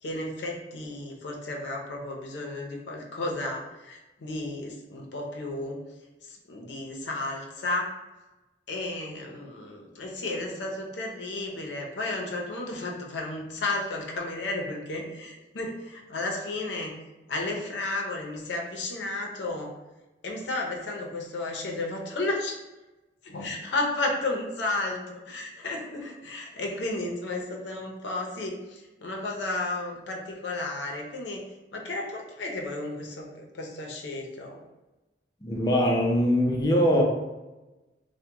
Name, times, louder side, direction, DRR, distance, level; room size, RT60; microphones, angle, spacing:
voice 1, 0.0-5.8 6.2-7.9 8.7-17.0 17.3-19.7 20.2-22.6 23.2-31.4 31.7-34.6, left 2 dB, 90° left, 0 dB, 0.6 m, -33 dB
voice 2, 35.4-37.0, equal, 20° left, 0 dB, 0.5 m, -22 dB
2.8 x 2.1 x 3.4 m, 1.1 s
head